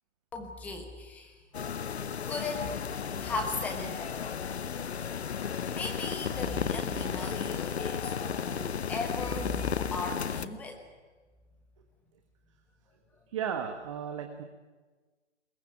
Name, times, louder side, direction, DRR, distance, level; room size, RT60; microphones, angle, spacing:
voice 1, 0.3-1.4 2.3-2.8 3.2-4.3 5.7-10.8, left 2 dB, 5° left, 4 dB, 1.0 m, -37 dB
sound 1, 1.5-10.5, left 7 dB, 60° left, 0.9 m, -34 dB
voice 2, 13.3-14.4, right 8 dB, 25° right, 5 dB, 1.4 m, -34 dB
21.5 x 18.5 x 9.2 m, 1.3 s
hypercardioid pair, 155°, 36 cm